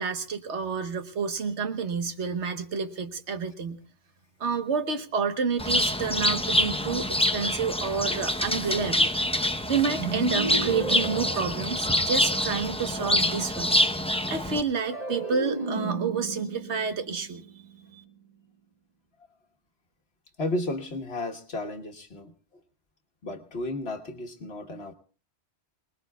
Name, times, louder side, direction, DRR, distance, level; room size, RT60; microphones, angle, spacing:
voice 1, 0.0-3.8 4.4-9.1 9.7-13.7 14.3-17.4 17.9-18.0, right 5 dB, 85° right, 8 dB, 1.5 m, -29 dB
Bird, 5.6-14.6, left 1 dB, 5° left, 0.6 m, -26 dB
Harp Transition Music Cue, 10.0-12.4 14.8-18.1, right 3 dB, 35° right, 1.7 m, -34 dB
voice 2, 20.4-22.3 23.2-24.9, left 2 dB, 65° left, 4 dB, 1.5 m, -33 dB
28.0 x 20.0 x 2.3 m, 0.38 s
omnidirectional pair, 1.1 m